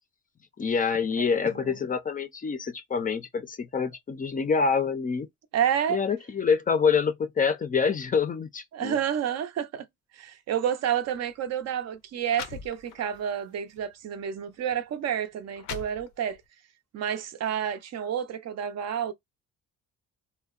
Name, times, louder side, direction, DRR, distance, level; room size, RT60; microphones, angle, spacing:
voice 1, 0.6-5.3 5.9-9.0, left 5 dB, 30° left, 0.4 m, -26 dB
voice 2, 1.2-1.8 5.5-6.0 8.7-9.9 10.1-16.4 16.9-19.1, right 9 dB, 60° right, 0.5 m, -30 dB
sound 1, 11.0-11.2 11.9-12.0 12.3-13.2 13.8-13.9 14.7-14.8 15.3-16.5, left 9 dB, 90° left, 0.5 m, -41 dB
2.6 x 2.1 x 2.3 m
cardioid pair, 90°, 30 cm